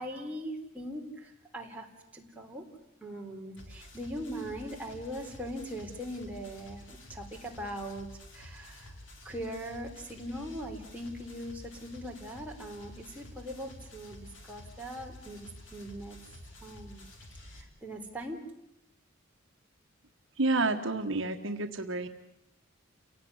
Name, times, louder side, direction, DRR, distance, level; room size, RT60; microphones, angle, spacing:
voice 1, 0.0-1.9 2.1-2.7 3.0-8.1 8.3-9.0 9.2-16.2 16.6-17.1 17.5-18.4, equal, 5° right, -1 dB, 3.5 m, -40 dB
sound 1, 3.6-17.6, left 1 dB, 60° left, 3.8 m, -50 dB
voice 2, 20.4-22.1, right 2 dB, 60° right, 5 dB, 1.5 m, -29 dB
29.5 x 17.5 x 9.6 m, 0.83 s
head